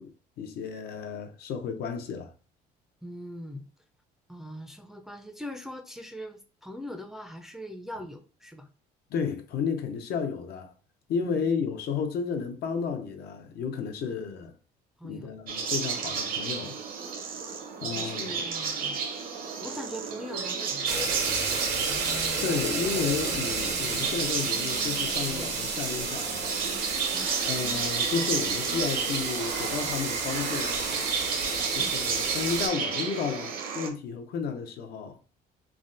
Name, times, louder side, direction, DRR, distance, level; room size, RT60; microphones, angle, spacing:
voice 1, 0.0-2.3 9.1-10.7 11.1-14.5 15.0-16.8 17.8-18.5 22.4-26.6 27.5-30.8 31.7-35.2, left 6 dB, 70° left, 0.6 m, -32 dB
voice 2, 3.0-3.7 4.3-8.7 11.2-11.4 15.0-15.3 17.9-19.0 19.6-21.2 27.1-27.3, left 1 dB, ahead, 0.4 m, -41 dB
sound 1, 15.5-33.9, right 5 dB, 60° right, 0.7 m, -32 dB
sound 2, 20.7-29.7, left 4 dB, 55° left, 1.0 m, -47 dB
sound 3, 20.9-32.7, right 4 dB, 85° right, 0.9 m, -32 dB
3.4 x 2.1 x 2.5 m
cardioid pair, 110°, 17 cm